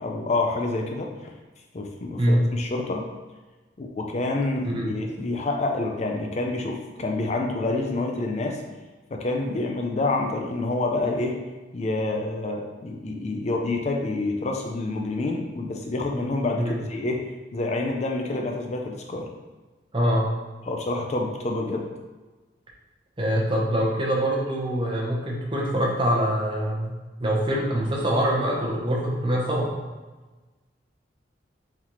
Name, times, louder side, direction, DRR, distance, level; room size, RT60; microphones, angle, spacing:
voice 1, 0.0-1.3 1.7-3.1 3.8-8.6 9.1-11.4 11.7-19.3 20.6-21.9, left 2 dB, 35° left, 2 dB, 0.4 m, -28 dB
voice 2, 19.9-20.3 23.2-26.9 27.2-29.8, equal, 30° right, -3 dB, 0.8 m, -24 dB
4.2 x 4.0 x 3.0 m, 1.2 s
head